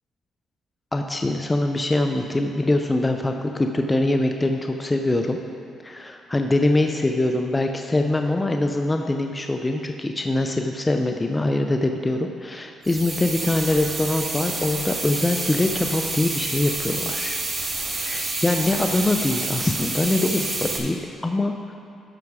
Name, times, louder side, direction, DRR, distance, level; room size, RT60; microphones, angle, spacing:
voice 1, 0.9-5.4 5.8-17.4 17.9-21.0 21.2-21.7, left 2 dB, 20° left, 4 dB, 0.5 m, -23 dB
sound 1, 12.8-20.8, right 3 dB, 35° right, 1.7 m, -28 dB
12.5 x 6.0 x 4.8 m, 2.6 s
cardioid pair, 90°, 0 cm